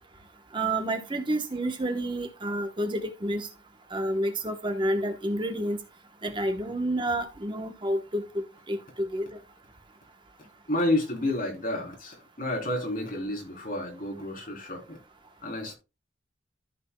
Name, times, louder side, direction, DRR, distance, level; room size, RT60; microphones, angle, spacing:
voice 1, 0.5-3.5 3.9-5.8 6.2-9.4, right 1 dB, 25° right, 1.0 m, -29 dB
voice 2, 10.7-15.0 15.4-15.7, left 1 dB, 50° left, 3.5 m, -30 dB
14.0 x 6.0 x 2.2 m
head